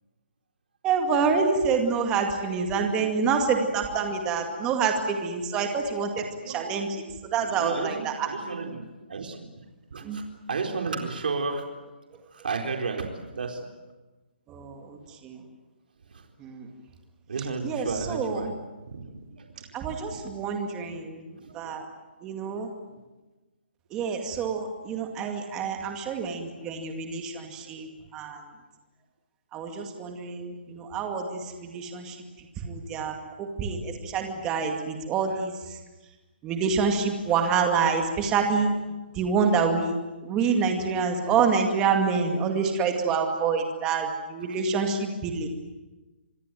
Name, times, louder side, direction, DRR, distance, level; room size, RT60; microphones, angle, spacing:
voice 1, 0.8-6.9 7.2-8.3 10.0-10.2 14.5-15.4 16.4-16.7 17.6-18.4 19.7-21.9 22.2-22.7 23.9-28.4 29.5-35.8 36.4-38.7 39.1-40.0 40.2-45.5, right 5 dB, 10° right, 4 dB, 2.2 m, -27 dB
voice 2, 3.7-4.1 6.4-6.7 7.4-11.7 12.3-13.7 16.0-16.3 17.3-18.5 18.8-19.6 20.1-20.2 21.3-21.7 22.8-23.0 27.8-27.9 37.3-37.4, right 4 dB, 60° right, 3 dB, 4.1 m, -33 dB
26.5 x 21.0 x 9.2 m, 1.1 s
hypercardioid pair, 175°, 6 cm